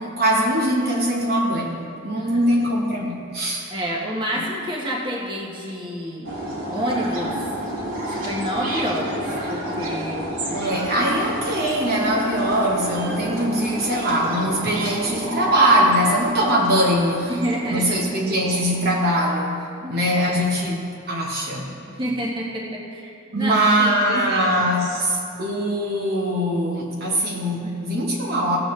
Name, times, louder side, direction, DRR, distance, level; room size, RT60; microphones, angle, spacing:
voice 1, 0.0-3.7 10.5-17.3 17.7-19.6 19.9-20.8 21.1-21.7 23.3-28.6, right 1 dB, 45° right, -3 dB, 1.1 m, -21 dB
voice 2, 3.7-6.3 6.7-7.4 8.1-10.3 17.3-18.0 19.8-20.0 21.9-24.5 27.6-27.8, equal, 20° right, -3 dB, 1.3 m, -28 dB
sound 1, 6.2-19.1, right 1 dB, 75° right, 2.2 m, -30 dB
16.5 x 7.5 x 3.2 m, 2.6 s
head